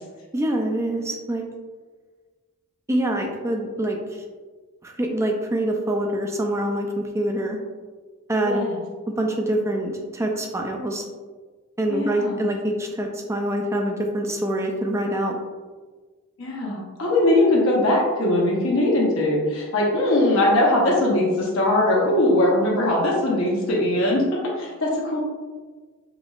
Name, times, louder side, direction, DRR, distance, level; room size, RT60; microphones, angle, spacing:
voice 1, 0.3-1.5 2.9-4.0 4.8-7.6 8.3-8.7 9.2-11.0 11.8-15.4, right 1 dB, 10° right, 2 dB, 0.3 m, -25 dB
voice 2, 8.4-8.8 11.9-12.5 16.4-24.2 24.6-25.2, left 1 dB, 65° left, -3 dB, 0.9 m, -20 dB
5.1 x 3.0 x 2.4 m, 1.4 s
head